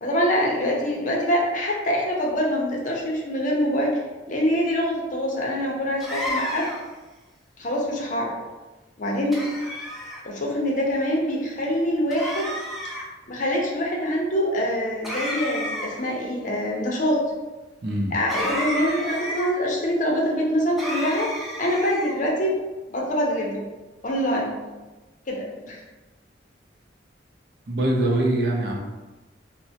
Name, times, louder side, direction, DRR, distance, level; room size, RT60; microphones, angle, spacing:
voice 1, 0.0-3.9 4.3-6.7 7.6-8.3 9.0-9.4 10.2-12.5 13.3-17.2 18.1-21.3 21.6-22.6 22.9-23.6 24.0-24.6 25.3-25.8, equal, 45° left, -2 dB, 0.6 m, -24 dB
sound 1, 6.0-6.9 9.3-10.2 12.1-13.1 15.0-16.1 18.3-19.5 20.8-22.2, equal, ahead, 0.4 m, -31 dB
voice 2, 17.8-18.1 27.7-28.8, right 1 dB, 60° right, -1 dB, 0.5 m, -23 dB
3.2 x 2.1 x 2.7 m, 1.2 s
head